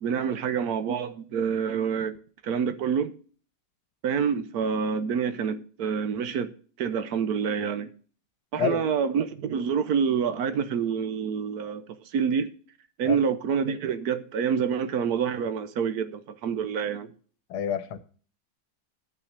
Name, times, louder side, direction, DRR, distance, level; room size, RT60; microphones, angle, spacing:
voice 1, 0.0-2.2 2.4-3.1 4.0-6.5 6.8-7.9 8.5-11.8 12.1-12.5 13.0-17.1, right 7 dB, 65° right, 1.2 m, -27 dB
voice 2, 17.5-18.0, left 8 dB, 75° left, 1.3 m, -28 dB
11.0 x 6.0 x 6.5 m
omnidirectional pair, 1.8 m